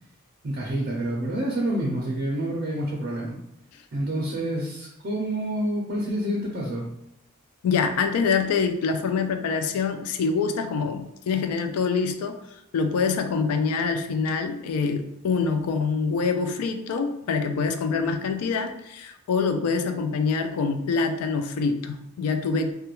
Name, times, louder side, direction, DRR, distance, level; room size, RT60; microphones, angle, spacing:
voice 1, 0.4-3.4 3.9-6.9, right 1 dB, 45° right, -2 dB, 0.4 m, -28 dB
voice 2, 7.6-22.8, left 5 dB, 85° left, 8 dB, 0.3 m, -25 dB
2.3 x 2.2 x 2.9 m, 0.80 s
head